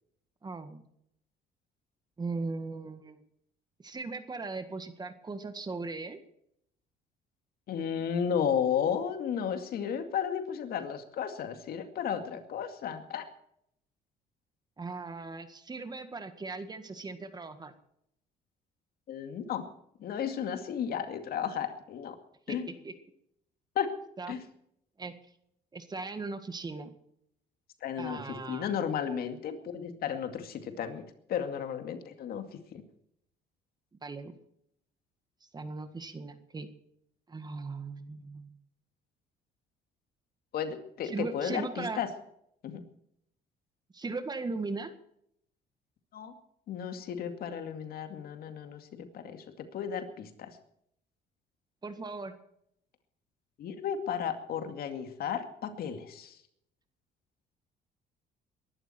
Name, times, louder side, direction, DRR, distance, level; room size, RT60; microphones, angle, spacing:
voice 1, 0.4-0.9 2.2-3.2 3.8-6.2 14.8-17.7 22.5-22.6 22.8-22.9 24.2-24.4 25.0-25.1 25.7-26.9 28.0-28.7 34.0-34.3 35.4-36.7 37.3-38.5 41.0-42.1 43.9-44.9 51.8-52.3, right 3 dB, 25° right, 9 dB, 1.8 m, -38 dB
voice 2, 7.7-13.3 19.1-19.7 20.0-22.2 22.5-22.7 23.8-24.0 24.3-24.4 27.8-32.8 40.5-42.1 42.6-42.9 46.1-46.3 46.7-50.6 53.6-56.4, left 8 dB, 65° left, 7 dB, 2.3 m, -34 dB
22.0 x 12.0 x 4.5 m, 0.74 s
cardioid pair, 110°, 17 cm